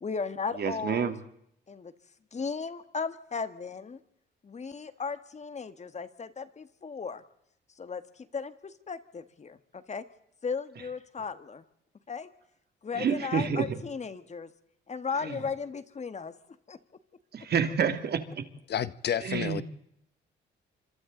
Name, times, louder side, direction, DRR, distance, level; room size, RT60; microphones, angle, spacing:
voice 1, 0.0-1.2 1.7-1.9 2.3-4.0 4.4-7.2 7.8-8.0 8.3-10.0 10.4-11.6 12.1-12.3 12.8-14.5 14.9-16.3 16.7-16.8, left 5 dB, 35° left, 1.7 m, -36 dB
voice 2, 0.6-1.2 12.9-13.7 15.2-15.3 17.3-18.4 19.2-19.6, right 7 dB, 55° right, 2.4 m, -28 dB
voice 3, 18.7-19.6, left 9 dB, 55° left, 0.9 m, -30 dB
26.5 x 25.5 x 4.0 m
cardioid pair, 90°, 20 cm